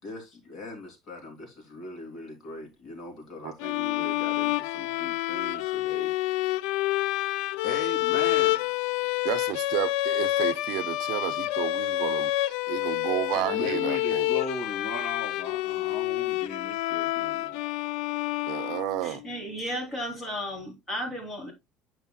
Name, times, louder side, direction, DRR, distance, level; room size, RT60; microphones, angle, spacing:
voice 1, 0.0-6.1 7.6-8.7 13.3-17.6, left 2 dB, 45° left, 3.1 m, -38 dB
sound 1, 3.6-19.3, left 17 dB, 85° left, 0.3 m, -28 dB
voice 2, 9.2-14.3 18.5-19.2, right 15 dB, 70° right, 0.6 m, -31 dB
voice 3, 19.0-21.5, equal, 20° left, 3.5 m, -34 dB
8.7 x 6.4 x 2.3 m
cardioid pair, 140°, 0 cm